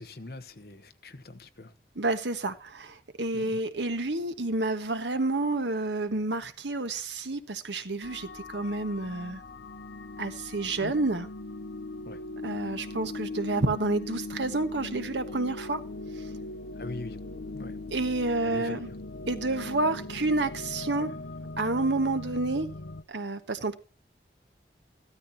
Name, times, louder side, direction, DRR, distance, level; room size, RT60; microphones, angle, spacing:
voice 1, 0.0-1.8 3.3-3.6 10.8-10.9 12.0-12.2 16.7-17.2 17.5-17.8 18.4-19.0, left 2 dB, 60° left, 1.1 m, -42 dB
voice 2, 1.9-9.4 10.2-11.3 12.4-15.8 16.2-16.3 17.9-18.9 19.3-21.1 21.6-22.7 23.1-23.8, right 2 dB, 90° right, 1.4 m, -29 dB
sound 1, 8.0-23.0, left 2 dB, 80° left, 0.8 m, -40 dB
15.0 x 13.0 x 2.9 m
head